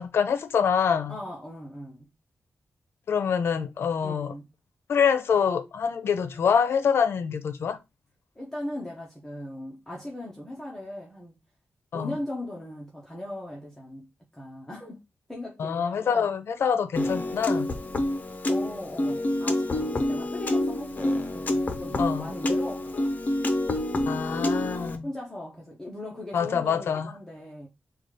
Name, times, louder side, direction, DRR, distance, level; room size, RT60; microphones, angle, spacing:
voice 1, 0.0-1.2 3.1-4.3 4.9-7.8 11.9-12.1 15.6-17.7 22.0-22.3 24.1-25.1 26.3-27.1, left 7 dB, 90° left, 0.6 m, -25 dB
voice 2, 1.1-2.1 4.0-4.5 8.4-11.3 11.9-15.0 15.3-16.3 18.5-23.1 25.0-27.7, left 1 dB, 10° left, 0.9 m, -38 dB
Piano, 16.9-25.0, left 1 dB, 40° left, 0.7 m, -27 dB
4.0 x 2.4 x 4.7 m
wide cardioid pair, 150°, 4 cm